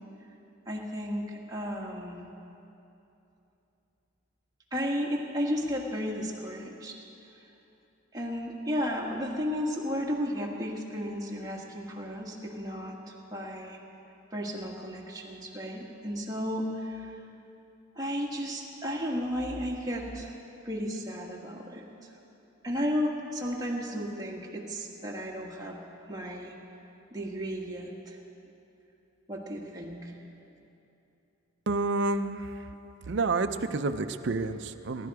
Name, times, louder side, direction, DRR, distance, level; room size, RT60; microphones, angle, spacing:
voice 1, 0.7-2.3 4.7-7.0 8.1-12.9 13.3-13.8 14.3-17.2 18.0-20.3 20.6-22.1 22.6-25.8 26.1-26.5 27.1-28.2 29.3-30.1, equal, 20° right, -2 dB, 1.5 m, -33 dB
voice 2, 31.7-32.7 33.1-35.1, right 3 dB, 60° right, 8 dB, 0.5 m, -29 dB
20.0 x 11.5 x 4.8 m, 2.9 s
head